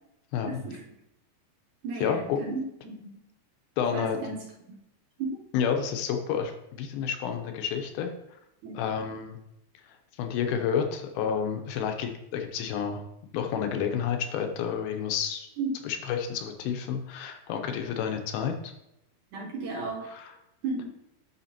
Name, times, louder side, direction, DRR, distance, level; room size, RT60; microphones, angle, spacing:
voice 1, 0.5-0.8 1.8-3.2 3.9-4.4 5.2-5.4 8.6-8.8 15.6-15.8 19.3-20.1 20.6-20.8, right 3 dB, 70° right, -2 dB, 2.0 m, -34 dB
voice 2, 2.0-2.4 3.8-4.2 5.5-6.5 6.8-8.4 8.7-9.4 9.8-13.0 13.3-15.5 15.8-18.7 20.0-20.3, left 7 dB, 80° left, 5 dB, 2.4 m, -30 dB
9.1 x 5.7 x 2.9 m, 0.84 s
omnidirectional pair, 4.6 m